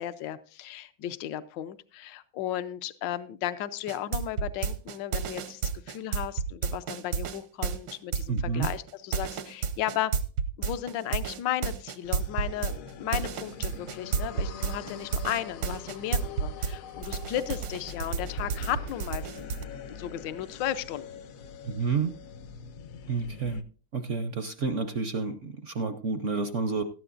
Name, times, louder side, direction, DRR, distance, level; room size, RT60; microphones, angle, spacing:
voice 1, 0.0-10.1 10.6-19.3 19.9-21.1, left 12 dB, 75° left, 12 dB, 1.4 m, -34 dB
sound 1, 3.9-16.7 17.0-19.6, right 6 dB, 80° right, 1.6 m, -31 dB
voice 2, 8.3-8.7 21.6-22.1 23.1-23.6 23.9-26.8, right 4 dB, 60° right, 10 dB, 0.8 m, -30 dB
sound 2, 12.0-23.6, left 7 dB, 60° left, 0.9 m, -43 dB
17.0 x 13.0 x 2.5 m, 0.36 s
omnidirectional pair, 2.0 m